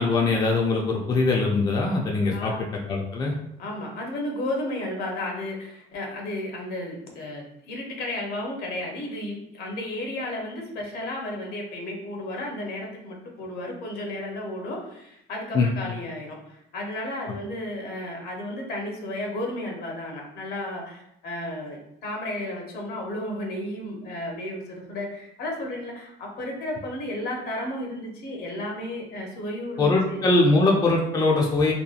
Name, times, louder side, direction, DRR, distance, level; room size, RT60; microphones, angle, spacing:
voice 1, 0.0-2.5 2.9-3.3 15.5-15.7 29.8-31.7, left 3 dB, 25° left, -1 dB, 0.4 m, -22 dB
voice 2, 2.3-2.7 3.6-30.3, left 1 dB, 65° left, 0 dB, 0.8 m, -33 dB
2.7 x 2.2 x 2.4 m, 0.80 s
cardioid pair, 110°, 17 cm